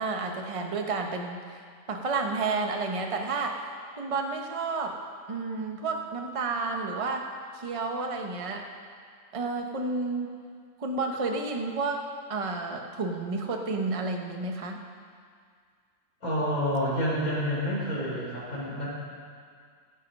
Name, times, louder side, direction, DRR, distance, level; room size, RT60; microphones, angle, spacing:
voice 1, 0.0-1.6 1.9-3.6 4.0-5.0 5.3-7.2 7.5-8.6 9.3-10.3 10.8-12.0 12.3-14.8, right 3 dB, 25° right, 2 dB, 0.8 m, -31 dB
voice 2, 16.2-18.9, equal, 60° left, -7 dB, 4.8 m, -28 dB
18.5 x 7.8 x 5.4 m, 2.1 s
omnidirectional pair, 1.7 m